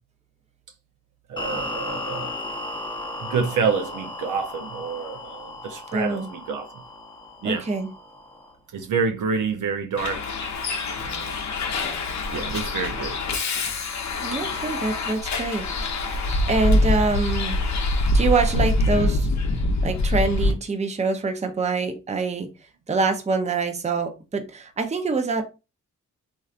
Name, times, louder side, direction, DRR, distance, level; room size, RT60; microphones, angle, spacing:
voice 1, 1.3-2.3 3.2-6.8 7.4-7.7 8.7-10.3 11.0-11.4 12.3-13.2, right 5 dB, 65° right, 0.7 m, -28 dB
sound 1, 1.4-8.5, left 1 dB, 15° left, 0.8 m, -35 dB
voice 2, 5.9-6.3 7.4-7.9 14.2-15.7 16.5-17.6 18.1-19.3 19.8-22.5 22.9-25.4, right 4 dB, 20° right, 0.6 m, -25 dB
Bus, 10.0-20.5, left 2 dB, 55° left, 0.8 m, -24 dB
3.1 x 2.6 x 2.4 m
supercardioid pair, 55°, 33 cm